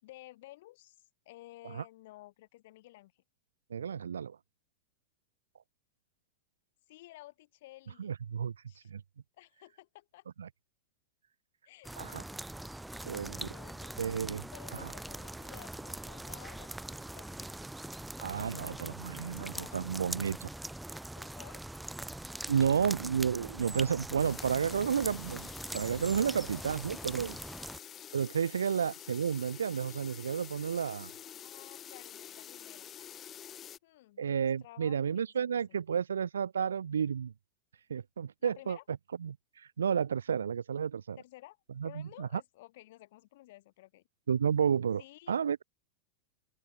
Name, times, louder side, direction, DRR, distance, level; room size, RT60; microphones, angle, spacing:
voice 1, 0.0-3.2 6.9-8.1 8.7-8.9 9.4-10.3 11.6-12.3 13.2-13.9 14.5-17.5 18.3-18.8 19.2-19.9 21.1-21.6 22.5-22.7 26.2-27.0 31.4-32.9 33.8-34.3 34.6-35.8 38.4-38.8 41.2-41.6 41.8-44.0 45.0-45.3, left 17 dB, 55° left, 4.9 m, -54 dB
voice 2, 3.7-4.4 8.0-8.5 8.9-9.0 10.4-10.5 12.0-12.2 13.0-13.5 14.0-14.9 18.2-20.5 22.5-27.4 28.1-31.1 34.2-37.3 37.9-38.8 39.2-41.2 41.8-42.3 44.3-45.0 45.3-45.6, right 7 dB, 70° right, 0.4 m, -31 dB
sound 1, 11.8-27.8, right 1 dB, 5° right, 0.8 m, -42 dB
sound 2, 24.2-33.8, left 10 dB, 25° left, 0.7 m, -48 dB
open air
figure-of-eight pair, 90°, 0 cm